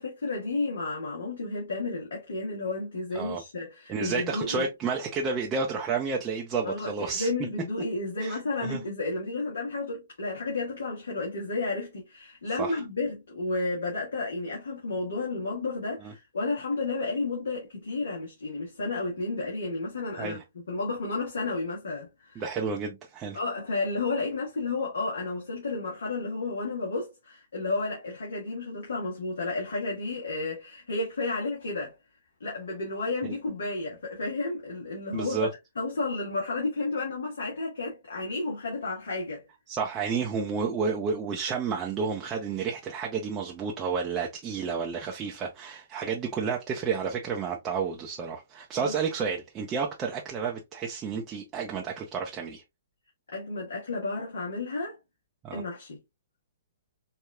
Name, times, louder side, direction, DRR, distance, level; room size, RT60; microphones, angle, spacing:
voice 1, 0.0-4.6 6.6-20.4 20.7-22.4 23.3-31.9 32.4-39.4 48.8-49.0 53.3-54.9 55.5-56.0, left 3 dB, 65° left, 1.5 m, -32 dB
voice 2, 3.9-7.3 8.2-8.8 12.6-12.8 16.0-16.1 20.2-20.4 22.4-23.4 33.2-33.4 35.1-35.5 39.7-52.6 55.4-55.6, right 5 dB, 20° right, 0.6 m, -31 dB
4.6 x 2.7 x 2.2 m
figure-of-eight pair, 120°, 0 cm